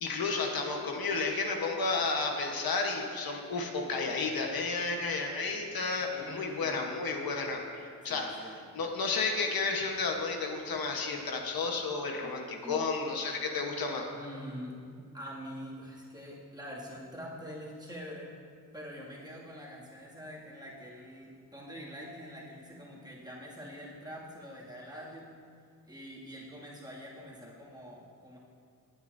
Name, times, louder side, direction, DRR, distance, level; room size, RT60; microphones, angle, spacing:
voice 1, 0.0-8.3 8.7-14.1, left 4 dB, 85° left, 2 dB, 1.2 m, -32 dB
voice 2, 6.1-6.9 8.0-8.7 12.2-12.9 14.1-18.3 18.7-25.3 25.9-28.4, equal, 10° right, -5 dB, 2.2 m, -45 dB
18.0 x 8.8 x 2.7 m, 2.3 s
wide cardioid pair, 105°, 35 cm